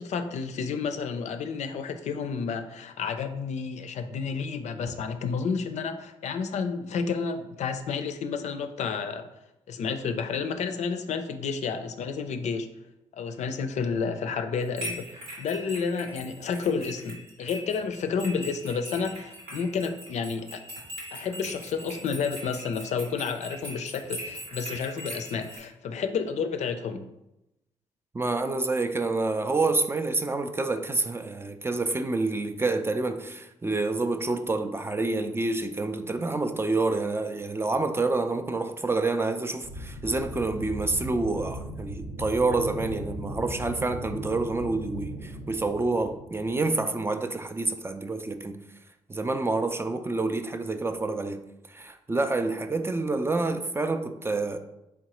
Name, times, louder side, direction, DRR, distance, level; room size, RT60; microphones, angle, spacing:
voice 1, 0.0-9.3 9.7-12.7 13.1-20.6 21.1-27.0, left 5 dB, 60° left, 0.4 m, -31 dB
sound 1, 14.5-25.6, equal, 85° right, 1.1 m, -41 dB
voice 2, 28.1-48.6 49.1-51.4 51.7-54.6, right 3 dB, 20° right, 0.4 m, -28 dB
sound 2, 39.6-46.7, equal, 50° right, 0.8 m, -38 dB
3.7 x 3.3 x 2.9 m
hypercardioid pair, 45°, 13 cm